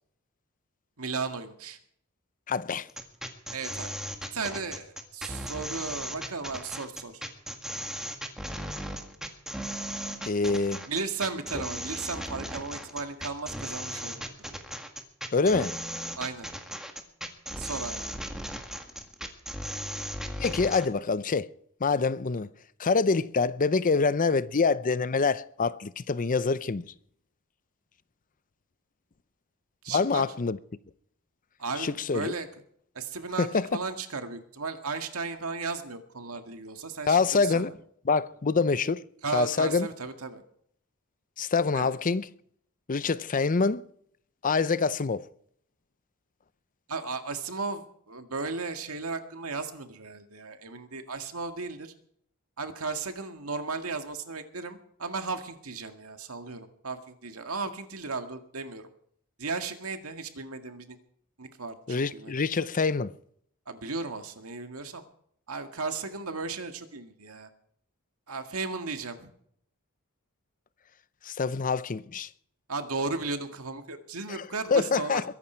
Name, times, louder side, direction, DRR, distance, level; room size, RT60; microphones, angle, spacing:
voice 1, 1.0-1.8 3.5-3.9 4.3-7.1 10.9-14.1 16.2-16.5 17.6-18.1 29.8-30.2 31.6-32.5 33.0-37.7 39.2-40.4 41.7-41.9 46.9-51.9 52.6-58.9 59.4-61.0 61.4-62.3 63.7-65.0 65.5-67.5 68.3-69.3 72.7-75.2, right 4 dB, 85° right, 1.9 m, -35 dB
voice 2, 2.5-2.9 10.2-10.8 15.3-15.8 20.4-21.5 21.8-22.5 22.8-26.9 29.9-30.6 31.8-32.3 33.4-33.7 37.1-37.7 38.0-39.0 39.3-39.9 41.4-42.3 42.9-43.8 44.4-45.2 61.9-63.1 71.2-72.3 74.3-74.4 74.7-75.2, left 4 dB, 40° left, 0.6 m, -26 dB
sound 1, 2.9-20.9, equal, ahead, 1.9 m, -37 dB
22.5 x 11.0 x 4.5 m
head